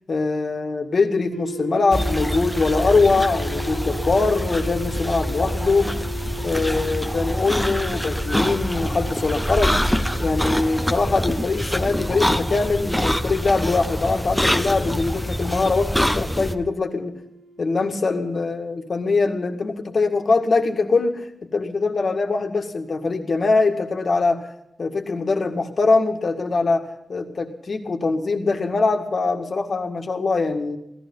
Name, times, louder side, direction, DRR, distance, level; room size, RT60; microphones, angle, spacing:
voice 1, 0.1-5.9 6.4-9.8 10.2-17.2 17.6-24.5 24.8-30.8, left 3 dB, 50° left, 5 dB, 2.0 m, -22 dB
sound 1, 1.3-19.3, right 1 dB, 70° right, 1.2 m, -38 dB
sound 2, 1.9-16.5, equal, 5° left, 0.9 m, -25 dB
17.0 x 14.5 x 5.6 m, 0.81 s
wide cardioid pair, 145°, 0 cm